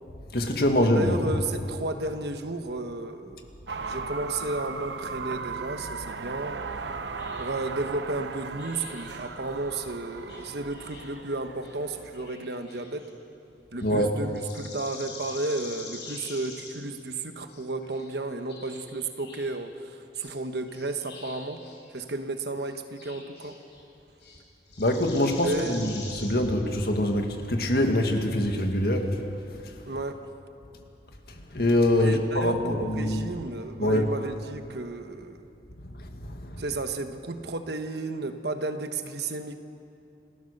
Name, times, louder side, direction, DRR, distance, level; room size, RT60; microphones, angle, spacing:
voice 1, 0.3-1.4 13.8-14.2 24.8-29.1 31.5-33.3 33.8-34.1 35.9-36.8, left 1 dB, 60° left, 4 dB, 1.9 m, -24 dB
voice 2, 0.9-3.5 3.8-6.6 7.4-13.1 13.7-21.6 21.9-23.6 25.4-26.0 29.9-30.2 32.0-35.5 36.6-39.6, right 2 dB, 70° right, 7 dB, 1.2 m, -33 dB
sound 1, 3.7-12.3, right 4 dB, 90° right, 0.9 m, -37 dB
sound 2, 7.2-7.6 8.6-11.2 11.6-13.1 13.8-14.0 14.3-16.8 17.5-19.5 20.2-20.3 20.7-22.1 22.6-23.9 24.2-24.4 24.7-26.3, left 4 dB, 80° left, 5.6 m, -45 dB
29.0 x 15.0 x 6.7 m, 2.7 s
head